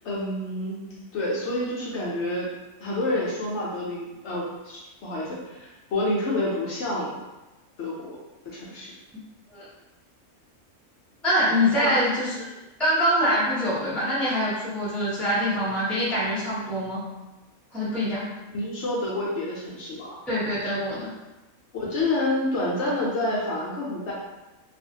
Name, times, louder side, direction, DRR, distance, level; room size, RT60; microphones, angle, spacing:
voice 1, 0.0-2.5 2.8-7.2 7.8-8.2 8.4-8.9 11.7-12.0 18.5-20.2 21.7-24.1, left 1 dB, 65° left, -6 dB, 0.8 m, -28 dB
voice 2, 11.2-12.5 12.8-17.0 17.7-18.3 20.3-21.1, equal, ahead, -9 dB, 0.7 m, -24 dB
2.4 x 2.4 x 2.7 m, 1.1 s
omnidirectional pair, 1.4 m